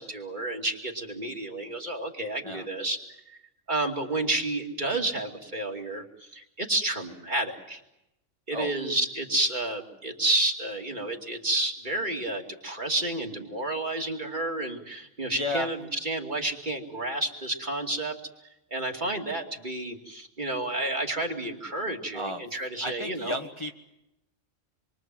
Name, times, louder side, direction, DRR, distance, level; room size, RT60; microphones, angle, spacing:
voice 1, 0.0-3.0 3.3-3.4 3.7-6.0 6.3-7.8 8.5-18.2 18.7-23.4, right 2 dB, 40° right, 2 dB, 2.8 m, -30 dB
voice 2, 15.3-15.7 22.1-22.4 22.8-23.7, left 1 dB, 25° left, 2 dB, 1.5 m, -32 dB
27.5 x 23.5 x 7.7 m, 0.89 s
omnidirectional pair, 1.3 m